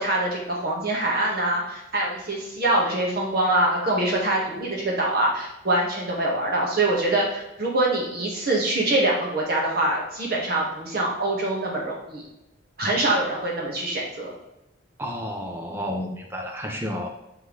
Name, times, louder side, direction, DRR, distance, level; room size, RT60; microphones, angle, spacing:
voice 1, 0.0-12.2 12.8-14.3, right 1 dB, 50° right, -3 dB, 1.7 m, -24 dB
voice 2, 15.0-17.1, equal, 10° right, 2 dB, 0.5 m, -31 dB
6.2 x 5.5 x 3.3 m, 0.91 s
head